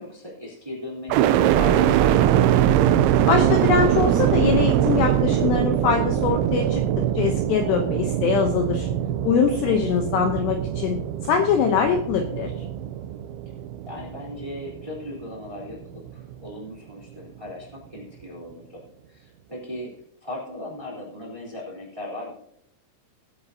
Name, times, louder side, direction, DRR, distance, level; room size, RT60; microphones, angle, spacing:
voice 1, 0.0-2.3 9.7-9.9 13.9-18.8 19.1-19.9 20.2-22.3, left 1 dB, 10° right, -4 dB, 2.5 m, -37 dB
sound 1, 1.1-15.1 15.6-16.3, right 11 dB, 80° right, 2.8 m, -22 dB
voice 2, 3.3-6.8 7.2-8.9 9.2-12.5, left 6 dB, 75° left, 4 dB, 2.6 m, -23 dB
21.0 x 8.5 x 2.8 m, 0.77 s
omnidirectional pair, 5.8 m